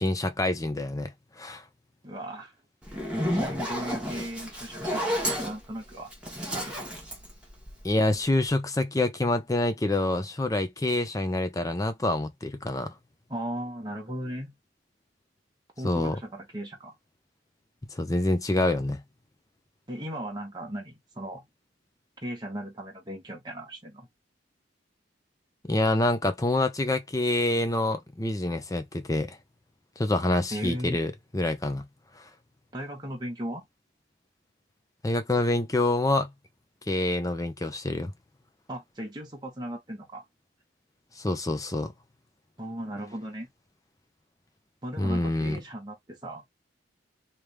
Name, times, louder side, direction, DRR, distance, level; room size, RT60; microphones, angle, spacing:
voice 1, 0.0-1.6 7.8-12.9 15.8-16.2 17.9-19.0 25.7-29.4 30.0-31.9 32.2-32.3 35.0-36.3 36.9-38.1 41.2-41.9 45.0-45.6, left 2 dB, 20° left, 0.7 m, -26 dB
voice 2, 2.0-2.5 3.2-6.1 6.5-6.8 13.3-14.5 15.8-16.9 19.9-21.4 22.2-24.1 30.5-31.0 32.7-33.6 38.7-40.2 42.6-43.5 44.8-46.4, right 1 dB, 25° right, 1.2 m, -37 dB
Zipper (clothing), 2.8-8.1, equal, 5° right, 1.4 m, -31 dB
3.3 x 3.0 x 3.3 m
head